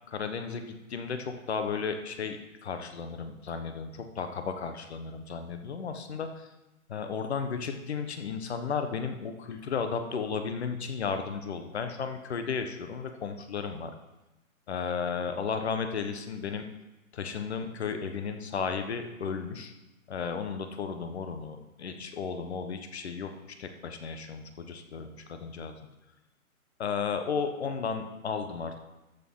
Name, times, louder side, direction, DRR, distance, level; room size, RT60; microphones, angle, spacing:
voice 1, 0.1-6.4 6.9-13.9 14.7-16.7 17.1-19.7 20.1-23.3 23.6-25.7 26.8-28.8, left 6 dB, 50° left, 7 dB, 1.2 m, -34 dB
13.5 x 6.5 x 3.8 m, 1.0 s
hypercardioid pair, 160°, 43 cm